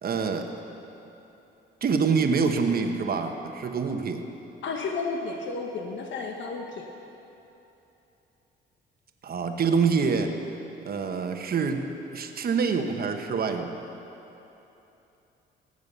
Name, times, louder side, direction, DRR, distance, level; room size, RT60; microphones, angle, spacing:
voice 1, 0.0-0.5 1.8-4.3 9.2-10.3 10.8-11.9 12.1-13.7, right 5 dB, 50° right, 5 dB, 1.2 m, -26 dB
voice 2, 4.6-6.8, left 4 dB, 70° left, 2 dB, 1.2 m, -32 dB
18.0 x 8.0 x 6.8 m, 3.0 s
cardioid pair, 90°, 20 cm